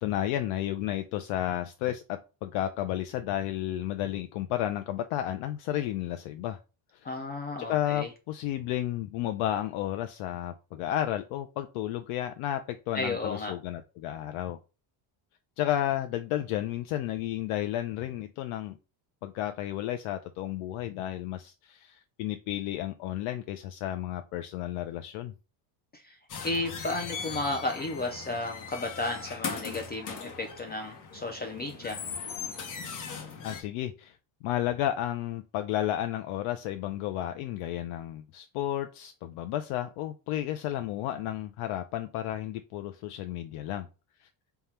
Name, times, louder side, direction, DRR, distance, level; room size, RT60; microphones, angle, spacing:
voice 1, 0.0-6.6 7.0-7.1 7.6-14.6 15.6-18.8 19.2-25.3 33.4-43.9 44.2-44.3, left 12 dB, 75° left, 8 dB, 0.5 m, -32 dB
voice 2, 7.0-8.1 12.9-13.5 25.9-26.2 26.4-32.0, left 2 dB, 20° left, 3 dB, 0.3 m, -33 dB
sound 1, 26.3-33.6, left 6 dB, 40° left, 0.8 m, -39 dB
3.6 x 2.3 x 4.2 m, 0.31 s
cardioid pair, 125°, 50 cm